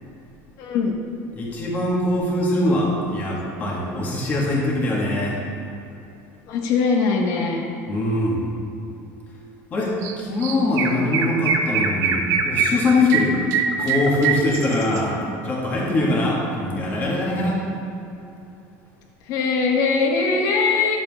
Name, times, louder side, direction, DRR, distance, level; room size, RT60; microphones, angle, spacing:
voice 1, 0.6-0.9 6.5-7.6 19.3-21.0, left 4 dB, 50° left, 1 dB, 1.3 m, -21 dB
voice 2, 1.4-5.4 7.9-8.4 9.7-13.4 13.8-15.1 15.4-17.6, left 2 dB, 25° left, -4 dB, 1.8 m, -22 dB
Chirp tweet, 10.0-10.1 10.4-15.0, right 5 dB, 45° right, 0.7 m, -23 dB
11.0 x 7.4 x 3.6 m, 2.9 s
cardioid pair, 165°, 7 cm